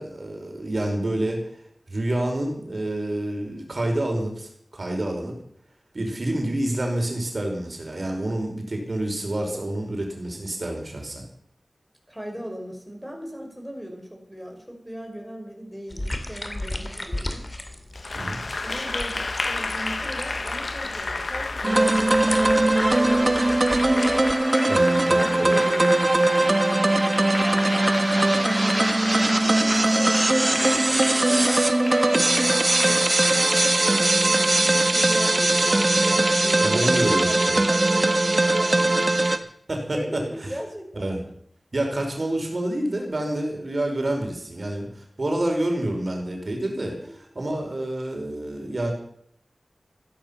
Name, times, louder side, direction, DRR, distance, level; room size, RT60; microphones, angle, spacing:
voice 1, 0.0-1.4 1.9-5.3 5.9-11.2 18.1-18.4 24.7-25.2 36.6-37.6 39.7-40.5 40.9-41.2 41.7-48.9, right 1 dB, 55° right, 2 dB, 5.1 m, -28 dB
voice 2, 12.1-17.5 18.6-23.7 25.1-26.0 26.8-32.5 32.8-39.3 39.9-41.3 46.8-47.1, equal, 5° right, 2 dB, 5.7 m, -38 dB
sound 1, 15.9-24.3, left 1 dB, 30° left, 2.6 m, -35 dB
Applause, 17.9-35.8, left 3 dB, 60° left, 1.0 m, -33 dB
sound 2, 21.6-39.4, right 2 dB, 40° right, 1.5 m, -20 dB
15.5 x 11.5 x 7.1 m, 0.66 s
wide cardioid pair, 55°, 0 cm